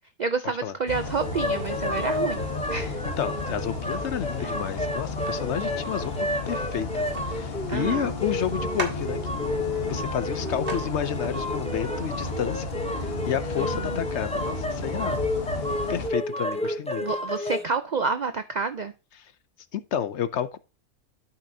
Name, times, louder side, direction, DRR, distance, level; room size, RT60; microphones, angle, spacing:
voice 1, 0.2-3.0 4.4-4.5 7.7-8.1 13.6-14.0 17.0-18.9, right 4 dB, 85° right, 0.4 m, -29 dB
sound 1, 0.9-16.1, left 3 dB, 45° left, 1.3 m, -33 dB
sound 2, 1.2-17.6, left 1 dB, 5° left, 0.5 m, -31 dB
voice 2, 3.2-12.7 13.0-15.2 15.9-17.0 19.7-20.6, left 9 dB, 65° left, 0.8 m, -31 dB
sound 3, 7.0-7.2 8.2-8.3 8.7-9.8 10.2-10.3 10.7-10.8 11.0-11.4, right 2 dB, 50° right, 2.2 m, -36 dB
12.0 x 5.8 x 2.7 m
omnidirectional pair, 1.5 m